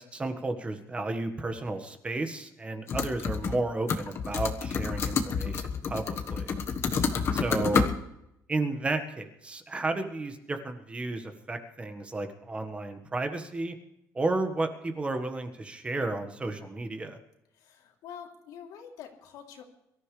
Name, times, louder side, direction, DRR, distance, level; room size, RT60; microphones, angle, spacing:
voice 1, 0.0-6.6 7.3-7.9 8.5-13.8 14.1-17.2, right 2 dB, 20° right, 7 dB, 1.5 m, -32 dB
sound 1, 2.9-3.6 3.9-7.9, left 5 dB, 40° left, 1.4 m, -29 dB
voice 2, 6.9-7.4 17.5-19.6, left 8 dB, 75° left, 1 dB, 3.2 m, -46 dB
23.5 x 14.0 x 3.3 m, 0.82 s
cardioid pair, 150°, 6 cm